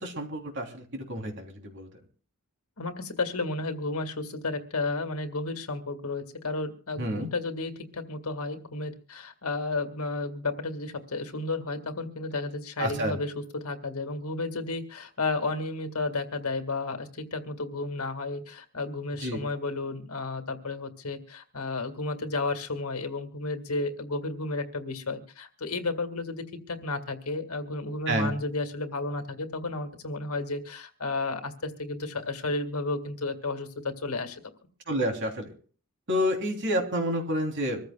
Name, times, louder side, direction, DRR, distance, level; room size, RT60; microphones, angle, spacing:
voice 1, 0.0-1.9 7.0-7.3 12.8-13.2 19.2-19.4 28.1-28.3 34.9-35.5 36.1-37.8, equal, 55° right, 2 dB, 3.2 m, -29 dB
voice 2, 2.8-34.4, left 3 dB, 85° left, 7 dB, 1.9 m, -32 dB
25.5 x 14.5 x 2.3 m, 0.43 s
head